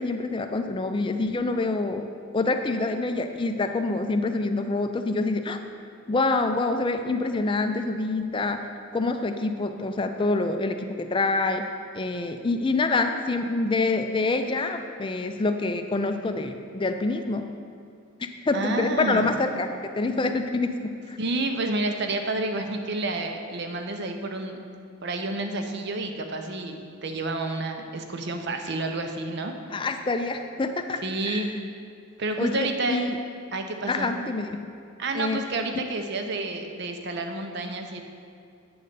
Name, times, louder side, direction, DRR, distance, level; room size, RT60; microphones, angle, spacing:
voice 1, 0.0-2.1 2.3-5.6 6.1-11.6 11.9-17.5 18.5-19.7 19.9-20.8 21.1-21.2 29.7-31.5 32.4-33.2 33.9-34.6 35.1-35.4, left 3 dB, 25° left, 7 dB, 0.4 m, -26 dB
voice 2, 18.5-19.3 21.2-24.6 25.0-29.5 31.0-31.5 32.2-33.0 33.5-34.1 35.0-38.0, right 2 dB, 55° right, 5 dB, 0.6 m, -29 dB
8.6 x 4.0 x 6.6 m, 2.4 s
head